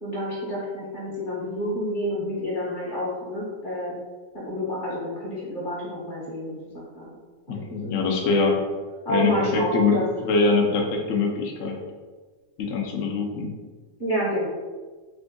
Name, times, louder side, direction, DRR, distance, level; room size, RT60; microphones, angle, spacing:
voice 1, 0.0-3.9 4.3-7.1 7.5-8.2 8.4-8.5 9.0-10.0 14.0-14.5, equal, 30° left, -8 dB, 1.1 m, -29 dB
voice 2, 7.5-8.5 9.1-11.8 12.6-13.5, left 4 dB, 70° left, 0 dB, 0.7 m, -23 dB
3.4 x 2.5 x 3.7 m, 1.4 s
omnidirectional pair, 2.1 m